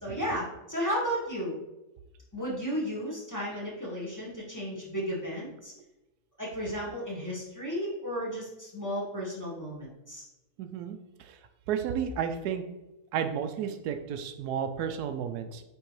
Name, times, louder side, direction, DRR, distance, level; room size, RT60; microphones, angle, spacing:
voice 1, 0.0-1.5 2.3-5.7 6.4-10.2, equal, 10° left, -6 dB, 1.6 m, -34 dB
voice 2, 10.6-11.4 11.7-12.6 13.1-15.6, right 8 dB, 80° right, 8 dB, 1.1 m, -32 dB
8.8 x 3.7 x 3.1 m, 0.98 s
omnidirectional pair, 1.6 m